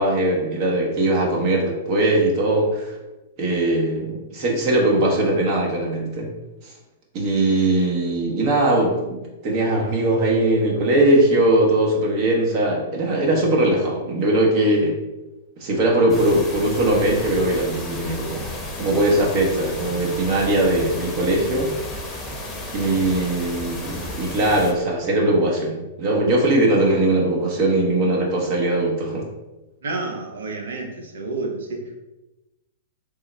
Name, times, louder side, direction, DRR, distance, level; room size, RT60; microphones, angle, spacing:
voice 1, 0.0-3.0 3.4-6.3 6.6-6.7 7.1-14.9 15.6-18.5 18.8-21.7 22.7-29.3, right 1 dB, 45° right, -2 dB, 0.9 m, -20 dB
sound 1, 16.1-24.7, left 1 dB, 15° left, 0.9 m, -33 dB
voice 2, 29.8-32.0, right 3 dB, 75° right, 3 dB, 0.7 m, -30 dB
3.6 x 2.1 x 4.1 m, 1.0 s
hypercardioid pair, 115°, 0 cm